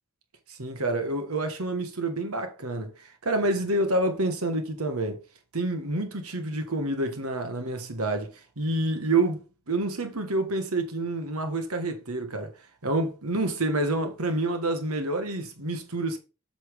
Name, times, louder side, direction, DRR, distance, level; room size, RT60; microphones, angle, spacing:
voice 1, 0.5-5.2 5.5-8.3 8.6-12.5 12.8-16.2, right 2 dB, 90° right, 1.5 m, -28 dB
8.1 x 6.0 x 3.5 m
head